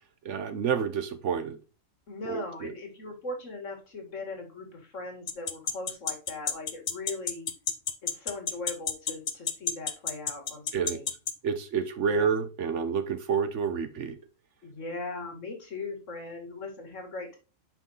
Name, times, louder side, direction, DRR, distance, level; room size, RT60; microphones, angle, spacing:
voice 1, 0.2-1.6 2.3-2.7 10.7-11.0 11.4-14.2, right 6 dB, 65° right, 9 dB, 1.1 m, -29 dB
voice 2, 2.1-7.5 8.0-11.1 12.0-12.3 14.6-17.4, left 3 dB, 65° left, 2 dB, 2.1 m, -39 dB
sound 1, 5.3-11.3, left 6 dB, 45° left, 0.5 m, -28 dB
5.8 x 4.9 x 4.0 m, 0.32 s
omnidirectional pair, 1.4 m